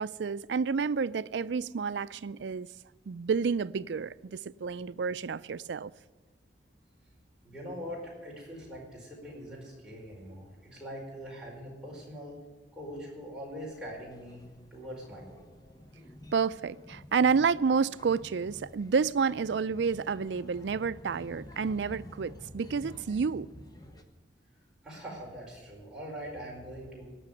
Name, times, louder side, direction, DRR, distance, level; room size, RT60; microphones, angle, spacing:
voice 1, 0.0-2.7 3.1-5.9 16.3-23.5, right 5 dB, 80° right, 0.4 m, -30 dB
voice 2, 7.4-12.4 12.7-14.4 14.7-15.5 24.8-27.1, equal, 5° right, 4.7 m, -42 dB
sound 1, 13.6-24.0, left 1 dB, 20° left, 1.0 m, -50 dB
17.5 x 6.6 x 9.8 m
head